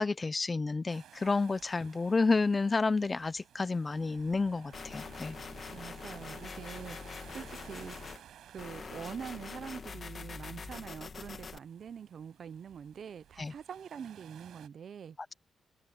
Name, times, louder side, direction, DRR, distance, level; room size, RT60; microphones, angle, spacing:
voice 1, 0.0-5.4 13.4-13.5, left 3 dB, 25° left, 0.5 m, -30 dB
sound 1, 0.9-14.7, right 11 dB, 85° right, 7.0 m, -56 dB
sound 2, 4.7-8.2 8.6-11.6, left 5 dB, 40° left, 1.8 m, -44 dB
voice 2, 5.7-8.3 8.5-15.2, right 7 dB, 55° right, 0.6 m, -45 dB
open air
cardioid pair, 120°, 0 cm